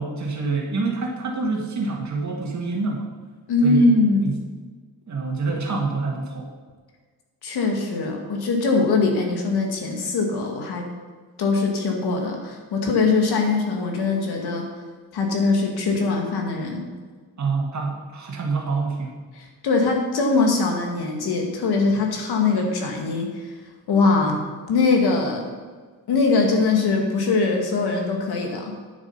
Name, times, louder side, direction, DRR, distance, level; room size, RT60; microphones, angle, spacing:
voice 1, 0.0-3.1 3.6-3.8 4.2-4.4 5.1-6.5 17.4-19.1, right 4 dB, 45° right, 1 dB, 2.0 m, -26 dB
voice 2, 3.5-4.3 7.4-10.9 11.4-14.7 15.1-16.8 19.4-23.3 23.9-24.4 24.7-25.5 26.1-28.7, left 3 dB, 75° left, 2 dB, 2.2 m, -22 dB
9.8 x 7.4 x 5.7 m, 1.5 s
cardioid pair, 120°, 39 cm